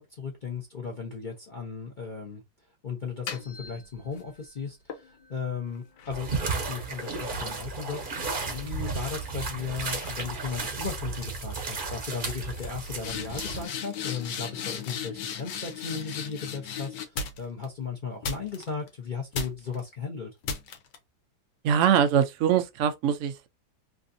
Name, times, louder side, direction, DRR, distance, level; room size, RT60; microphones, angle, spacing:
voice 1, 0.0-2.4 2.8-5.0 5.3-8.0 8.4-20.3, left 5 dB, 50° left, 0.5 m, -36 dB
sound 1, 3.0-4.3 4.9-8.5 8.8-9.2 10.0-10.2 10.5-10.9 11.2-11.6 11.9-12.0 12.2-17.6 18.2-18.9 19.3-19.8 20.4-21.0, left 6 dB, 75° left, 1.4 m, -37 dB
sound 2, 6.1-13.7, right 4 dB, 45° right, 0.7 m, -33 dB
voice 2, 21.6-23.5, right 8 dB, 90° right, 0.7 m, -23 dB
3.3 x 2.5 x 2.6 m
omnidirectional pair, 1.9 m